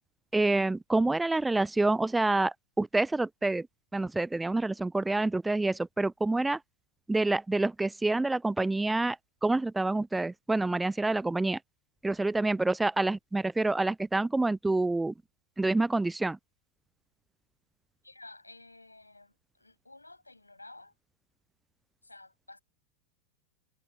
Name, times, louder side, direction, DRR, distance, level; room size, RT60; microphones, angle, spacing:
voice 1, 0.3-3.7 3.9-6.6 7.1-9.2 9.4-11.6 12.0-15.1 15.6-16.4, right 2 dB, 5° right, 0.3 m, -27 dB
voice 2, 18.0-21.0 22.0-22.6, left 2 dB, 85° left, 8.0 m, -52 dB
figure-of-eight pair, 90°, 0 cm